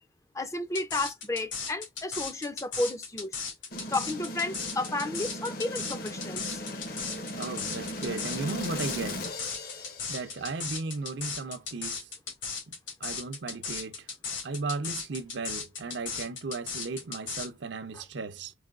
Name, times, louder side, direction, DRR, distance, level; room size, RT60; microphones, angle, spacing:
voice 1, 0.3-3.4 3.9-6.6 17.9-18.0, left 2 dB, 15° left, 0.4 m, -32 dB
sound 1, 0.7-17.5, left 5 dB, 80° left, 2.2 m, -36 dB
sound 2, 3.7-10.6, left 1 dB, 50° left, 0.8 m, -38 dB
voice 2, 7.3-9.3 10.1-12.1 12.7-12.8 13.0-14.1 14.4-18.5, right 3 dB, 65° right, 0.6 m, -35 dB
4.8 x 2.6 x 2.4 m
head